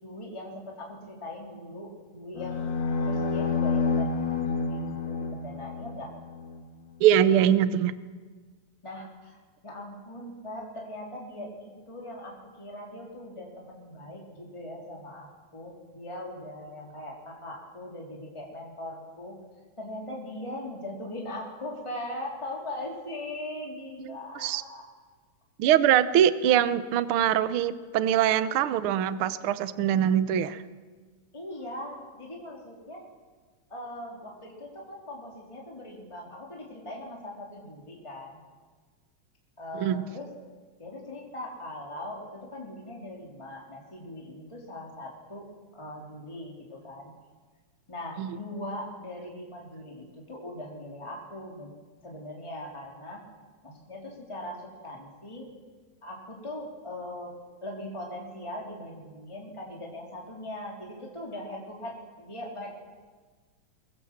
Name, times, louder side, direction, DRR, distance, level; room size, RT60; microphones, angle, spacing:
voice 1, 0.0-2.7 3.0-6.1 8.8-9.4 9.6-19.4 19.8-24.9 31.3-33.1 33.7-38.4 39.6-40.3 40.8-47.1 47.9-51.7 52.0-53.3 53.6-55.5 56.0-57.3 57.6-62.7, left 1 dB, 10° left, -2 dB, 3.1 m, -40 dB
sound 1, 2.4-6.6, left 4 dB, 50° left, 1.8 m, -29 dB
voice 2, 7.0-8.0 24.1-24.6 25.6-30.6 39.7-40.1 48.2-48.4, right 10 dB, 65° right, 13 dB, 1.4 m, -23 dB
23.5 x 22.5 x 7.3 m, 1.4 s
omnidirectional pair, 3.4 m